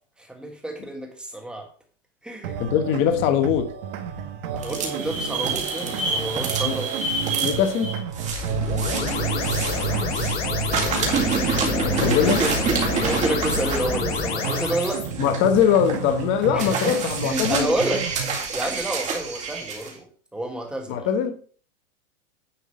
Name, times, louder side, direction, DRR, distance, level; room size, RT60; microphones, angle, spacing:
voice 1, 0.3-1.7 2.2-2.5 4.5-6.9 9.7-9.9 11.9-12.6 13.0-15.0 16.5-16.9 17.2-20.0 20.3-21.1, right 1 dB, 5° right, 1.6 m, -29 dB
sound 1, 2.4-18.4, right 8 dB, 50° right, 1.3 m, -31 dB
voice 2, 2.6-3.7 6.6-6.8 7.4-7.9 11.7-12.4 15.2-17.8 20.9-21.4, left 8 dB, 35° left, 1.3 m, -22 dB
sound 2, 4.6-10.4 10.7-19.9, right 4 dB, 20° right, 2.1 m, -28 dB
sound 3, 8.3-15.1, left 5 dB, 65° left, 3.5 m, -28 dB
9.9 x 3.8 x 6.4 m
supercardioid pair, 155°, 36 cm